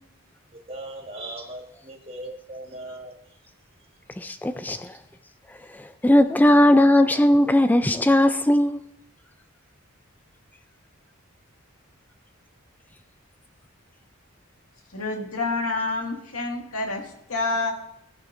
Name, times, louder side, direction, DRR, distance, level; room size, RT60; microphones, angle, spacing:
voice 1, 0.7-3.1, right 1 dB, 25° right, 1.5 m, -38 dB
voice 2, 4.2-4.9 5.7-8.8, left 1 dB, 10° left, 0.3 m, -18 dB
voice 3, 14.9-17.7, left 3 dB, 80° left, 1.9 m, -28 dB
15.0 x 9.6 x 2.6 m
head